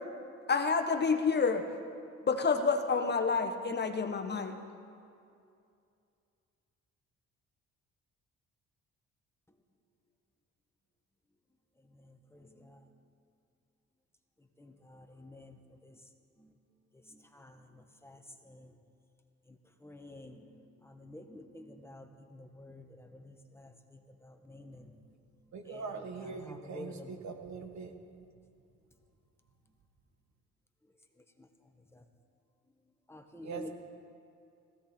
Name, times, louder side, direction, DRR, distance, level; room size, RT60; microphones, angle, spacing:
voice 1, 0.5-1.6 2.2-4.6, left 5 dB, 35° left, 1.2 m, -28 dB
voice 2, 12.3-12.8 14.6-16.0 16.4-16.5 17.1-18.2 18.4-18.7 19.5-19.6 19.8-25.0 25.7-27.2 31.9-32.0 33.1-33.7, left 1 dB, 10° left, 1.2 m, -50 dB
voice 3, 25.5-27.9 33.4-33.7, right 5 dB, 65° right, 1.5 m, -42 dB
16.0 x 15.0 x 4.4 m
cardioid pair, 90°, 30 cm